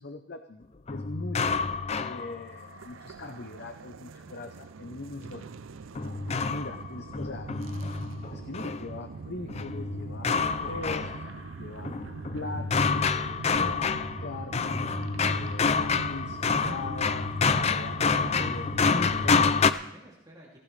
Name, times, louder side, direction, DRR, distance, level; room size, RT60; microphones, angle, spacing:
voice 1, 0.0-5.5 6.4-7.6 8.1-11.1 11.6-11.9 12.3-14.9 15.2-17.3 17.6-19.5, left 3 dB, 55° left, 7 dB, 0.8 m, -41 dB
sound 1, 0.9-2.8 5.9-8.9 9.5-11.5 11.8-19.7, left 5 dB, 30° left, 0.5 m, -28 dB
sound 2, 2.3-19.5, right 4 dB, 75° right, 0.5 m, -42 dB
voice 2, 17.7-18.6 19.1-19.2 19.6-20.6, right 1 dB, 20° right, -4 dB, 2.7 m, -53 dB
19.0 x 15.5 x 3.3 m, 0.87 s
head